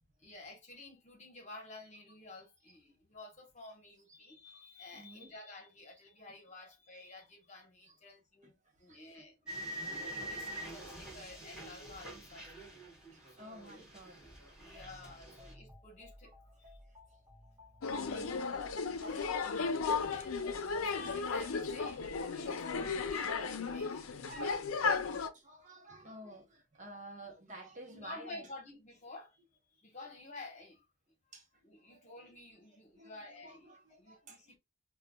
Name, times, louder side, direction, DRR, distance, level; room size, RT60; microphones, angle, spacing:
voice 1, 0.2-8.5 8.8-9.6 10.1-12.8 13.3-13.8 14.5-16.4 16.7-16.8 19.0-19.4 19.6-24.3 24.5-24.7 27.9-29.4 29.7-30.8 31.6-34.6, left 2 dB, 35° left, 1.1 m, -52 dB
voice 2, 4.9-5.3 7.8-7.9 8.4-9.2 9.9-10.0 10.4-10.5 13.1-14.2 14.7-14.8 17.9-18.5 18.9-19.2 19.4-20.1 22.2-22.4 24.3-28.5 31.3-31.6 31.9-32.0 32.7-34.4, right 1 dB, 35° right, 0.9 m, -52 dB
sound 1, 9.5-13.4 13.7-15.5, right 1 dB, 5° right, 1.9 m, -45 dB
sound 2, 14.6-21.9, left 2 dB, 20° right, 1.4 m, -57 dB
sound 3, 17.8-25.3, left 5 dB, 85° left, 0.5 m, -35 dB
5.4 x 2.3 x 2.2 m
head